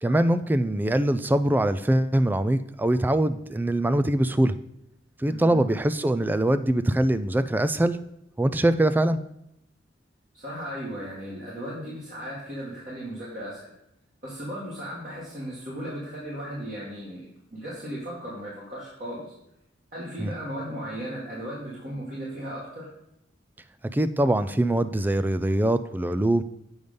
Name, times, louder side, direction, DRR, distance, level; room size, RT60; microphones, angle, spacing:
voice 1, 0.0-4.5 5.2-8.0 8.4-9.2 20.2-20.3 23.9-26.4, right 1 dB, 10° right, 13 dB, 0.3 m, -23 dB
voice 2, 5.3-5.6 10.3-13.7 14.2-19.3 19.9-22.9, equal, 45° right, -7 dB, 2.1 m, -36 dB
8.0 x 5.3 x 5.2 m, 0.82 s
head